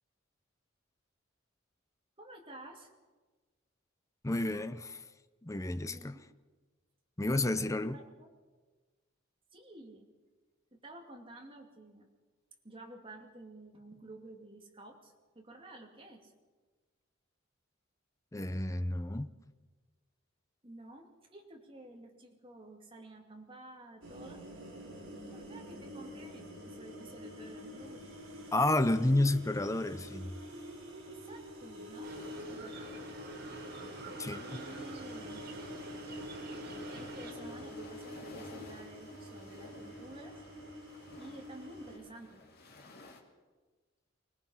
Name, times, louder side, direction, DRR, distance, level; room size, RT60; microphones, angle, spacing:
voice 1, 2.2-2.9 5.8-6.2 7.5-8.3 9.5-10.1 10.7-12.1 12.6-16.3 20.6-24.4 25.2-28.1 31.0-32.2 32.5-32.9 34.3-35.4 36.9-40.4 41.2-42.4, right 2 dB, 25° right, 2.5 m, -51 dB
voice 2, 4.2-5.0 5.4-6.2 7.2-8.0 18.3-19.3 28.5-30.3 34.2-34.4, left 2 dB, 15° left, 0.6 m, -30 dB
sound 1, 24.0-42.0, equal, 75° right, 5.2 m, -46 dB
sound 2, 32.0-37.3, right 3 dB, 55° right, 3.6 m, -47 dB
sound 3, 36.6-43.2, left 2 dB, 50° left, 2.5 m, -54 dB
24.5 x 19.0 x 5.7 m
head